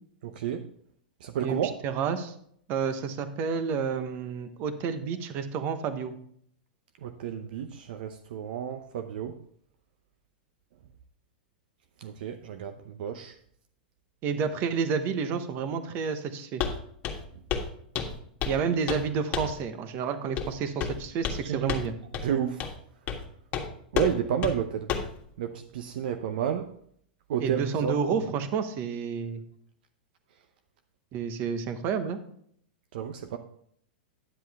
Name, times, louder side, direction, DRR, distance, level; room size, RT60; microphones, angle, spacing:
voice 1, 0.2-0.6 1.2-1.7 7.0-9.3 12.0-13.3 21.5-21.8 22.2-22.6 23.9-24.9 25.4-26.7 27.3-27.9 28.3-28.4 32.9-33.4, right 8 dB, 65° right, 7 dB, 0.7 m, -31 dB
voice 2, 1.4-2.3 2.7-6.1 14.2-16.6 18.4-21.9 27.4-29.4 31.1-32.2, right 6 dB, 40° right, 9 dB, 1.1 m, -30 dB
Walk footsteps, 16.6-16.8 17.0-17.2 17.5-17.7 18.0-18.6 18.9-19.1 19.3-19.6 20.4-20.5 20.8-21.4 21.7-21.9 22.1-22.3 22.6-22.8 23.1-23.2 23.5-23.7 24.0-24.1 24.4-24.5 24.9-25.1, left 7 dB, 35° left, 1.6 m, -30 dB
10.0 x 7.6 x 3.5 m, 0.65 s
hypercardioid pair, 110°, 5 cm